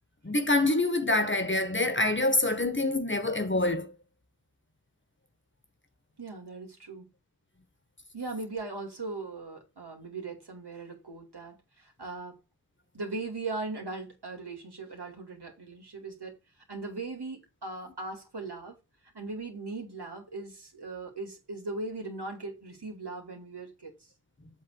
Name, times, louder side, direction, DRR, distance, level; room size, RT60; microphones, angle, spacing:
voice 1, 0.2-3.9, left 2 dB, 30° left, 1.5 m, -26 dB
voice 2, 6.2-7.1 8.1-12.4 12.9-16.4 16.7-18.8 19.1-23.9, right 3 dB, 80° right, 2.8 m, -39 dB
7.9 x 3.6 x 6.6 m
wide cardioid pair, 55°, 39 cm